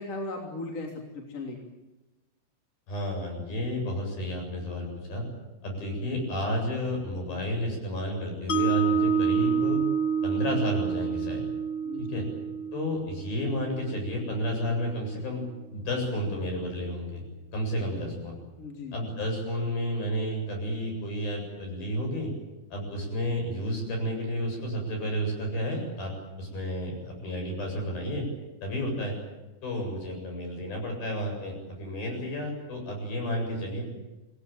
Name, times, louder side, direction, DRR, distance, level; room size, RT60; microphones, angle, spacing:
voice 1, 0.0-1.7 11.8-12.3 18.6-19.0, left 2 dB, 40° left, 0 dB, 3.9 m, -37 dB
voice 2, 2.9-5.2 5.6-9.8 10.2-11.4 12.0-12.2 12.7-15.4 15.7-17.2 17.5-18.4 18.9-22.3 22.7-26.1 26.4-28.2 28.6-29.2 29.6-33.8, equal, 60° left, 2 dB, 9.5 m, -31 dB
Mallet percussion, 8.5-14.7, right 6 dB, 75° left, 1.1 m, -28 dB
27.5 x 19.0 x 9.2 m, 1.1 s
omnidirectional pair, 4.9 m